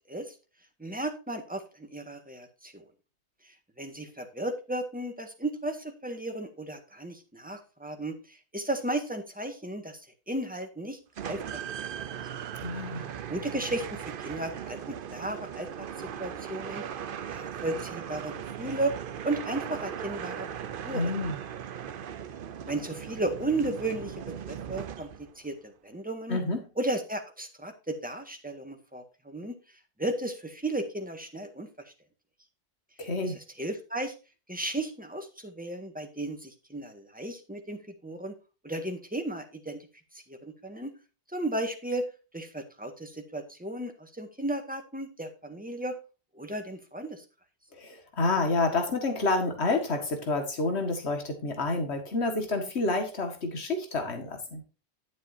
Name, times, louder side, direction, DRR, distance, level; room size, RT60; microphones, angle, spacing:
voice 1, 0.8-2.9 3.4-10.0 10.3-11.0 11.2-11.8 13.3-16.8 17.3-18.9 19.2-20.5 20.8-21.1 22.6-26.4 26.8-29.5 30.0-31.7 33.2-34.1 34.5-38.3 38.6-39.9 40.3-40.9 41.3-42.1 42.3-45.9 46.3-47.2, right 1 dB, 10° right, 5 dB, 1.7 m, -34 dB
sound 1, 11.2-25.4, right 8 dB, 55° right, 0.8 m, -38 dB
voice 2, 12.6-13.1 20.9-21.4 26.3-26.6 33.0-33.4 47.7-54.6, left 3 dB, 70° left, 5 dB, 2.1 m, -29 dB
11.5 x 7.4 x 2.7 m, 0.31 s
omnidirectional pair, 1.1 m